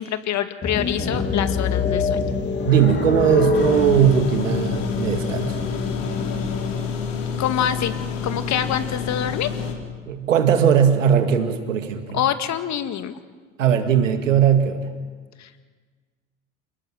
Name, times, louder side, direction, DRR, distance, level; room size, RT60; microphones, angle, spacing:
voice 1, 0.0-2.2 7.4-7.9 8.2-9.5 12.1-13.2 15.4-15.6, left 10 dB, 45° left, 9 dB, 2.1 m, -25 dB
sound 1, 0.6-6.9, left 4 dB, 30° left, 2.8 m, -25 dB
voice 2, 2.6-5.6 10.1-12.2 13.6-14.9, right 8 dB, 85° right, 7 dB, 2.2 m, -19 dB
sound 2, 3.5-9.7, left 6 dB, 80° left, 4.2 m, -29 dB
28.5 x 19.0 x 7.5 m, 1.5 s
hypercardioid pair, 70°, 38 cm